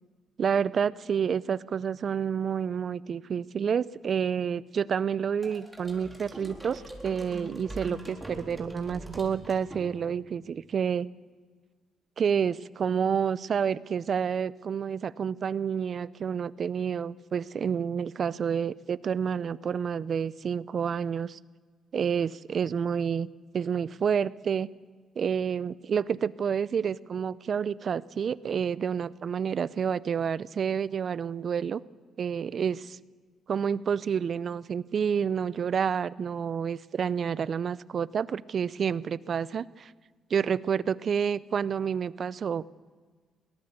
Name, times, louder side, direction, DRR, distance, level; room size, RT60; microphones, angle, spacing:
voice 1, 0.4-11.1 12.2-21.4 21.9-23.3 23.5-24.7 25.2-31.8 32.2-33.0 33.5-39.9 40.3-42.6, right 7 dB, 50° right, 19 dB, 0.5 m, -29 dB
sound 1, 5.4-10.3, right 1 dB, 5° right, 4.1 m, -42 dB
21.5 x 18.0 x 6.6 m, 1.5 s
cardioid pair, 90°, 0 cm